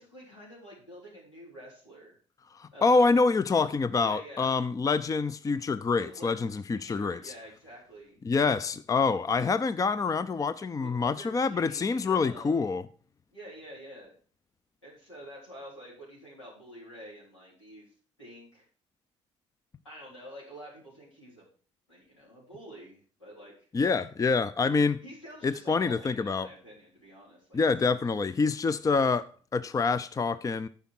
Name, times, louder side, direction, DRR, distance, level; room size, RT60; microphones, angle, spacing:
voice 1, 0.0-2.1 2.7-3.1 4.0-4.6 6.0-8.2 10.8-12.7 13.3-14.1 14.8-17.9 18.2-18.7 19.8-21.5 21.9-23.7 25.0-27.9, equal, 85° left, 3.9 m, -48 dB
voice 2, 2.5-7.3 8.2-12.8 23.7-25.0 25.4-26.5 27.5-30.7, left 4 dB, 25° left, 0.5 m, -26 dB
10.0 x 6.0 x 6.2 m
figure-of-eight pair, 50°, 15 cm